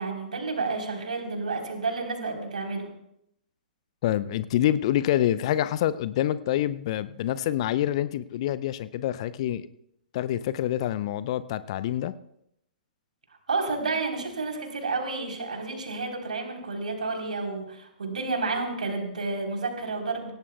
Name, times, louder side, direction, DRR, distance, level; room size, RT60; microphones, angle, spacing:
voice 1, 0.0-2.9 13.5-20.3, right 3 dB, 65° right, 2 dB, 3.7 m, -30 dB
voice 2, 4.0-9.7 10.1-12.1, left 12 dB, 40° left, 16 dB, 0.6 m, -26 dB
26.0 x 17.0 x 2.3 m, 0.76 s
figure-of-eight pair, 110°, 5 cm